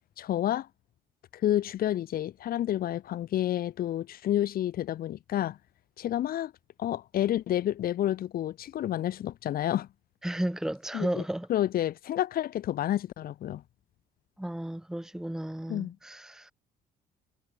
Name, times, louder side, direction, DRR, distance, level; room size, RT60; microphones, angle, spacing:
voice 1, 0.2-0.7 1.3-5.6 6.0-6.5 6.8-9.9 10.9-11.2 11.5-13.6 15.7-16.0, left 12 dB, 60° left, 1.9 m, -29 dB
voice 2, 10.2-11.5 14.4-16.5, right 1 dB, 5° right, 1.2 m, -33 dB
cardioid pair, 110°, 17 cm